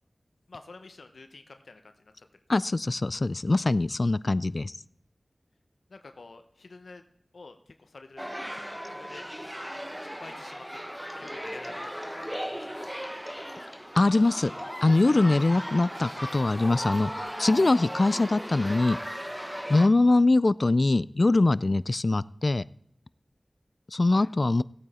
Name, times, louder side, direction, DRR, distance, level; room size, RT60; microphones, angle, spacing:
voice 1, 0.5-2.3 3.5-3.6 5.9-7.0 7.3-9.3 10.2-13.1 13.3-13.7 15.0-15.2 17.4-17.9 20.0-20.2 24.0-24.3, left 3 dB, 85° left, 7 dB, 0.7 m, -48 dB
voice 2, 2.5-4.7 14.0-14.5 14.8-19.0 19.7-22.6 23.9-24.6, left 2 dB, 55° left, 19 dB, 0.3 m, -23 dB
sound 1, 8.2-19.9, equal, 5° right, 0.8 m, -37 dB
sound 2, 11.1-15.9 17.1-17.2, left 1 dB, 20° left, 1.3 m, -46 dB
16.0 x 8.7 x 4.2 m, 0.71 s
cardioid pair, 40°, 0 cm